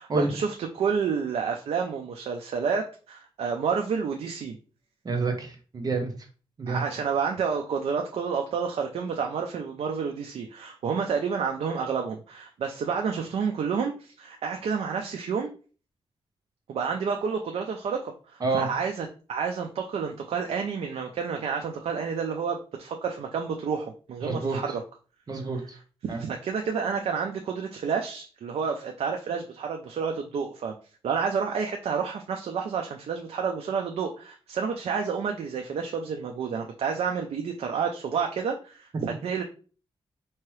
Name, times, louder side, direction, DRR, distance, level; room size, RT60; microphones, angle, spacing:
voice 1, 0.0-4.6 6.7-15.5 16.7-24.8 26.0-30.7 31.0-39.4, right 6 dB, 90° right, 3 dB, 0.5 m, -30 dB
voice 2, 5.0-6.1 6.6-6.8 18.4-18.7 24.2-24.6 25.3-25.8 26.1-26.2, right 3 dB, 40° right, 4 dB, 0.9 m, -28 dB
4.5 x 2.9 x 3.2 m, 0.37 s
wide cardioid pair, 165°, 10 cm